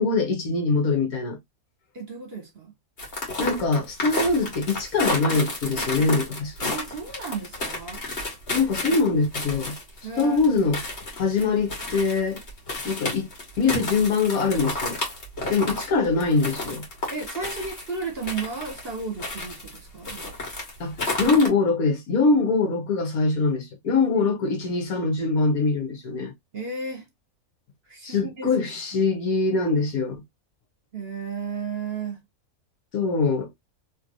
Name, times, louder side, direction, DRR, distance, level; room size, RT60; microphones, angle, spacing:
voice 1, 0.0-1.4 3.4-6.8 8.5-9.8 10.2-10.8 11.2-12.4 12.8-13.3 13.6-15.0 15.5-16.8 20.8-26.3 28.0-30.2 32.9-33.5, left 4 dB, 75° left, 1.6 m, -23 dB
voice 2, 1.9-2.7 6.7-8.0 8.8-9.0 10.0-10.4 17.1-20.3 24.1-24.3 26.5-27.1 27.9-28.5 29.0-29.1 30.9-32.2, right 4 dB, 45° right, 1.4 m, -34 dB
sound 1, 3.0-19.8 20.0-21.5, left 2 dB, 45° left, 1.9 m, -31 dB
3.2 x 3.1 x 2.5 m
omnidirectional pair, 1.6 m